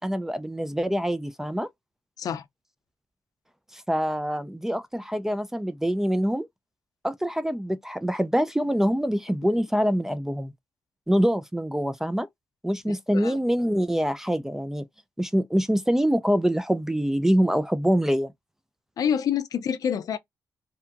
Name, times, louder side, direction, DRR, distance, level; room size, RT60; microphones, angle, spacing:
voice 1, 0.0-1.7 3.7-6.5 7.0-10.5 11.1-12.3 12.6-14.8 15.2-18.3, equal, 5° right, 0.3 m, -25 dB
voice 2, 19.0-20.2, left 8 dB, 65° left, 0.5 m, -27 dB
2.7 x 2.4 x 2.6 m
cardioid pair, 125°, 7 cm